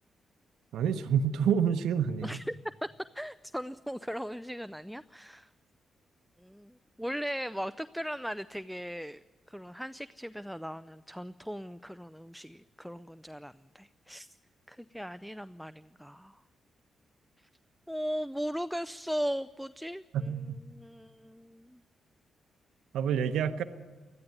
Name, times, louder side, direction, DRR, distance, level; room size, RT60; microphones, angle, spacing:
voice 1, 0.7-2.3 20.1-20.6 22.9-23.6, right 7 dB, 75° right, 11 dB, 0.8 m, -28 dB
voice 2, 2.2-2.5 2.8-2.9 3.1-5.5 6.4-14.3 14.7-16.4 17.4-17.5 17.9-21.8, equal, ahead, 13 dB, 0.5 m, -38 dB
20.5 x 13.5 x 9.6 m, 1.3 s
hypercardioid pair, 40°, 0 cm